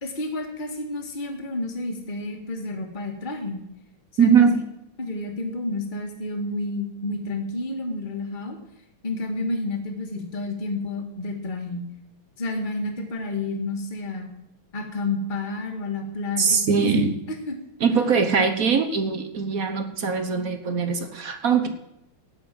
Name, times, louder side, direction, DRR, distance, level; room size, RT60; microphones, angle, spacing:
voice 1, 0.0-3.6 4.1-4.5 5.0-8.6 9.0-11.9 12.4-14.3 14.7-17.1 17.5-17.6, left 2 dB, 25° left, 2 dB, 2.0 m, -30 dB
voice 2, 4.2-4.6 16.4-17.1 17.8-21.7, right 5 dB, 50° right, 8 dB, 1.3 m, -21 dB
12.0 x 8.8 x 7.6 m, 0.84 s
omnidirectional pair, 2.4 m